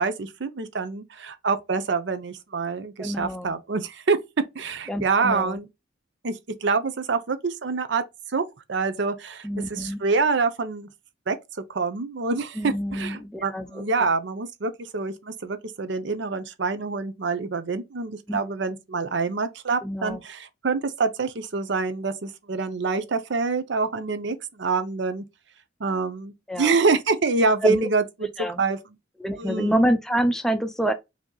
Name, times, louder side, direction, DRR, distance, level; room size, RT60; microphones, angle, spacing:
voice 1, 0.0-4.2 4.5-5.7 6.2-8.0 8.3-10.9 11.3-11.4 11.7-25.2 25.8-28.8 29.4-29.9, right 4 dB, 60° right, 0.6 m, -26 dB
voice 2, 3.0-3.5 4.9-5.6 9.4-10.0 12.6-13.8 18.3-18.5 19.8-20.2 26.5-26.7 27.6-27.9 28.4-28.6 29.2-30.9, right 1 dB, ahead, 0.5 m, -26 dB
5.0 x 2.8 x 2.2 m
head